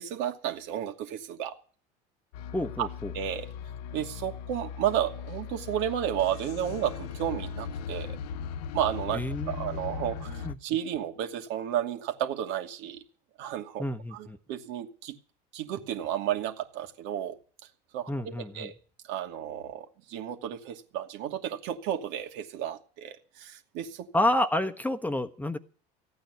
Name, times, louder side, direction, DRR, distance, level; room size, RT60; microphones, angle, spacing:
voice 1, 0.0-1.5 2.8-2.9 3.1-3.5 3.9-8.2 8.7-9.2 9.5-13.0 13.4-13.8 14.1-15.2 15.5-17.4 17.9-18.7 19.1-24.1, right 10 dB, 65° right, 4 dB, 2.5 m, -32 dB
sound 1, 2.3-10.5, left 7 dB, 75° left, 0.8 m, -38 dB
voice 2, 2.5-3.1 9.1-10.5 13.8-14.4 18.1-18.7 24.1-25.6, left 1 dB, 10° left, 7 dB, 1.2 m, -30 dB
15.0 x 9.1 x 9.6 m, 0.41 s
hypercardioid pair, 80°, 20 cm